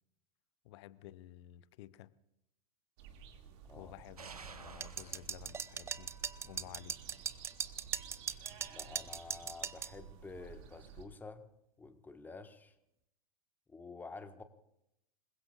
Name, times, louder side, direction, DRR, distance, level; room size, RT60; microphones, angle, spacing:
voice 1, 0.6-2.1 3.7-6.1 6.4-7.0, left 14 dB, 50° left, 18 dB, 0.8 m, -53 dB
sound 1, 3.0-11.0, right 7 dB, 45° right, 2.3 m, -54 dB
sound 2, 4.2-9.4, right 5 dB, 80° right, 1.2 m, -57 dB
sound 3, 4.8-9.9, right 7 dB, 15° right, 0.6 m, -39 dB
voice 2, 8.7-11.5 11.8-12.7 13.7-14.4, left 3 dB, 10° left, 9 dB, 1.4 m, -49 dB
27.5 x 21.5 x 2.4 m, 0.79 s
figure-of-eight pair, 95°, 19 cm